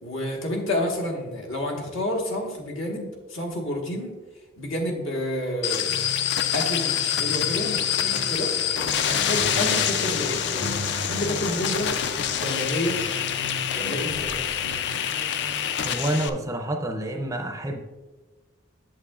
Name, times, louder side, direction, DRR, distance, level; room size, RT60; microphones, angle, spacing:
voice 1, 0.0-4.1 4.6-5.9 6.5-8.5 9.1-11.9 12.4-13.2 13.7-14.3, left 1 dB, 70° left, 0 dB, 1.4 m, -29 dB
sound 1, 5.6-16.3, left 9 dB, 55° left, 0.4 m, -26 dB
sound 2, 5.8-15.6, equal, 90° left, 2.4 m, -38 dB
voice 2, 15.8-17.9, right 1 dB, 15° right, 5 dB, 0.4 m, -28 dB
8.2 x 7.4 x 2.4 m, 1.2 s
head